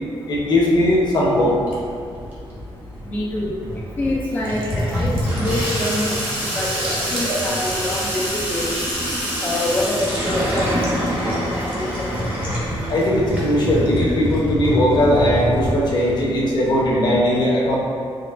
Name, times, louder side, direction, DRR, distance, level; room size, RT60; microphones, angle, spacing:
voice 1, 0.3-1.5 12.9-17.8, left 1 dB, 50° left, -4 dB, 0.7 m, -18 dB
Water tap faucet / Sink (filling or washing), 0.7-16.7, equal, 20° right, 0.9 m, -26 dB
voice 2, 3.1-3.6 4.0-6.2 6.6-6.7 7.1-8.8 9.4-12.1, left 1 dB, 15° left, -5 dB, 0.3 m, -25 dB
sound 1, 4.2-9.0 9.3-9.5, right 1 dB, 65° right, 0.7 m, -33 dB
4.2 x 3.0 x 2.4 m, 2.4 s
wide cardioid pair, 145°, 10 cm